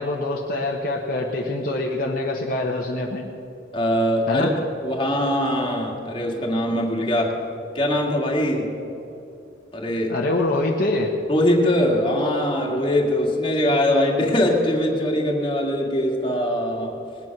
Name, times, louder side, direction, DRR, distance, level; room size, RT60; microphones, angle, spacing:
voice 1, 0.0-3.3 4.3-4.5 10.1-11.1, left 2 dB, 50° left, -1 dB, 1.1 m, -25 dB
voice 2, 3.7-4.5 4.8-7.4 7.7-8.7 9.7-10.1 11.3-17.0, left 1 dB, 25° left, -1 dB, 2.0 m, -22 dB
20.0 x 9.2 x 6.0 m, 2.8 s
head